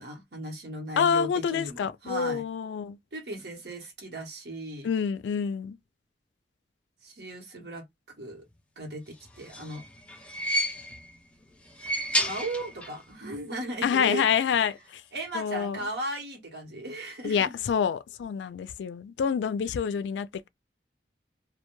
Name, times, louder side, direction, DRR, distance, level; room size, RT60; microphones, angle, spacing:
voice 1, 0.0-2.4 3.1-4.9 7.0-7.9 8.2-8.4 8.8-9.8 12.3-14.4 15.1-17.5, right 1 dB, 70° right, 1.0 m, -36 dB
voice 2, 1.0-3.0 4.8-5.8 13.8-15.0 15.3-15.8 17.2-20.5, left 7 dB, 85° left, 0.3 m, -27 dB
sound 1, 9.2-11.2 11.6-13.1 13.3-13.4 14.5-14.6, equal, 5° left, 0.4 m, -31 dB
2.2 x 2.2 x 3.0 m
head